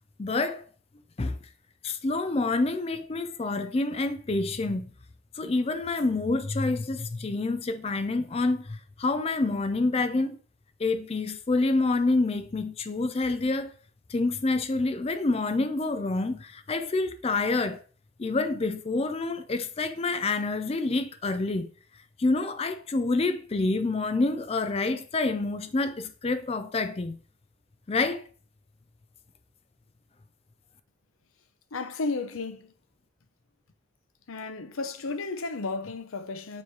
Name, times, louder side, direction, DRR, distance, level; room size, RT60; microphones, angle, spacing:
voice 1, 0.2-0.6 1.2-1.4 1.8-4.9 5.3-10.4 10.8-13.7 14.1-17.8 18.2-21.7 22.2-27.2 27.9-28.3, left 3 dB, 30° left, 0.4 m, -27 dB
voice 2, 31.7-32.7 34.3-36.6, left 3 dB, 90° left, 0.7 m, -33 dB
7.0 x 3.2 x 4.6 m
head